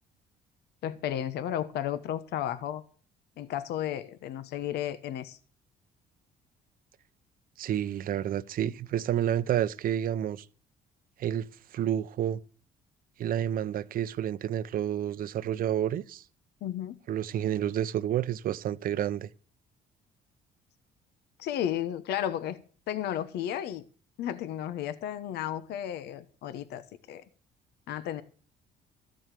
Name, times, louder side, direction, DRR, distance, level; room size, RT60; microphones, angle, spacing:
voice 1, 0.8-2.8 3.4-5.4 16.6-17.0 21.4-22.6 22.9-23.8 24.2-27.2 27.9-28.2, left 11 dB, 75° left, 1.1 m, -33 dB
voice 2, 7.6-10.5 11.2-11.5 11.7-12.4 13.2-16.2 17.1-19.3, right 10 dB, 60° right, 0.8 m, -29 dB
13.5 x 7.7 x 7.6 m
cardioid pair, 110°, 17 cm